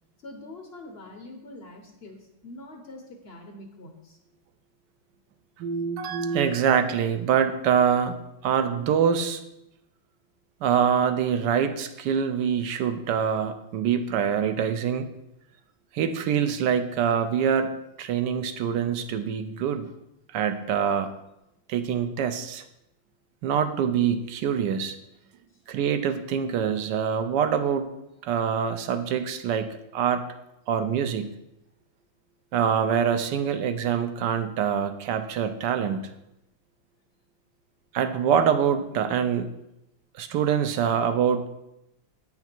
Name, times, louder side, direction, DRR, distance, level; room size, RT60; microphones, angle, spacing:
voice 1, 0.2-4.2, left 2 dB, 50° left, 3 dB, 0.8 m, -44 dB
voice 2, 5.6-8.2 8.4-9.4 10.6-15.1 15.9-17.7 18.0-19.9 20.3-21.2 21.7-22.6 23.4-25.0 25.7-27.9 28.2-30.3 30.7-31.3 32.5-36.1 37.9-39.5 40.1-41.5, right 7 dB, 70° right, 9 dB, 1.2 m, -25 dB
8.9 x 5.9 x 4.4 m, 0.86 s
omnidirectional pair, 2.1 m